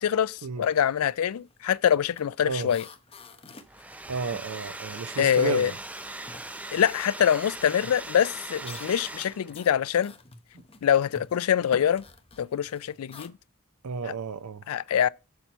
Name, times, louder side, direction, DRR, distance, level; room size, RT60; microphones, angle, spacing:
voice 1, 0.0-2.8 5.2-5.7 6.7-10.1 10.8-12.0 12.4-13.3 14.7-15.1, left 9 dB, 75° left, 0.3 m, -24 dB
sound 1, 0.7-0.9 1.2-5.3 5.6-13.3, left 3 dB, 25° left, 0.8 m, -50 dB
Domestic sounds home sounds, 3.6-9.6, right 2 dB, 5° right, 0.3 m, -40 dB
voice 2, 4.1-5.8 8.6-8.8 10.5-10.6 13.8-14.6, right 5 dB, 80° right, 0.5 m, -32 dB
7.0 x 6.0 x 4.3 m
head